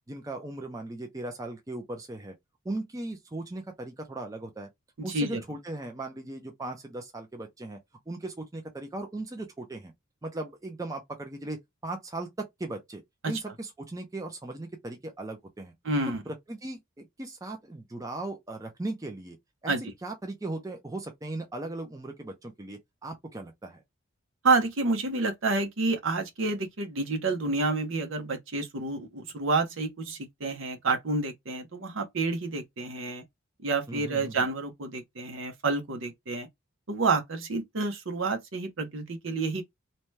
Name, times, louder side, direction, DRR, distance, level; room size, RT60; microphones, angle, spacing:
voice 1, 0.1-2.3 2.6-4.7 5.0-7.8 8.1-9.9 10.2-15.7 16.3-19.4 19.6-19.7 20.0-23.8 33.9-34.4, right 2 dB, 15° right, 0.5 m, -38 dB
voice 2, 5.0-5.4 13.2-13.4 15.8-16.2 19.7-19.8 24.4-33.2 33.6-36.5 36.9-39.6, right 3 dB, 70° right, 0.8 m, -29 dB
2.7 x 2.2 x 3.1 m
head